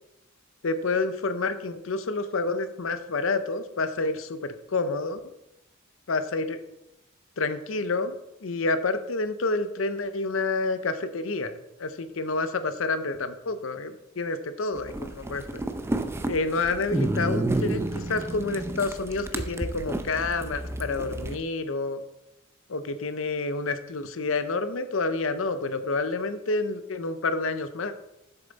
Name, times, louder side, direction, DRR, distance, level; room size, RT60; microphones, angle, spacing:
voice 1, 0.6-5.3 6.1-6.6 7.4-8.2 8.4-15.6 16.3-22.0 22.7-27.9, left 3 dB, 90° left, 10 dB, 0.7 m, -29 dB
sound 1, 14.7-21.4, right 1 dB, 15° right, 0.5 m, -30 dB
7.3 x 6.9 x 4.0 m, 0.88 s
head